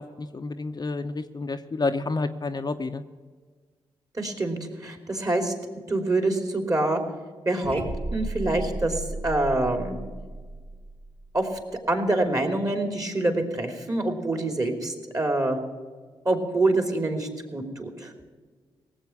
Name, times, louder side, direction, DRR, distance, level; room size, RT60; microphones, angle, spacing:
voice 1, 0.0-3.0, left 3 dB, 35° left, 7 dB, 0.8 m, -30 dB
voice 2, 4.1-5.5 5.9-7.0 7.4-7.8 8.1-10.0 11.3-11.6 11.9-15.6 16.2-18.1, right 2 dB, 30° right, 5 dB, 3.0 m, -26 dB
sound 1, 7.6-11.7, right 2 dB, 60° right, 2.4 m, -35 dB
17.5 x 7.8 x 7.1 m, 1.5 s
hypercardioid pair, 40°, 11 cm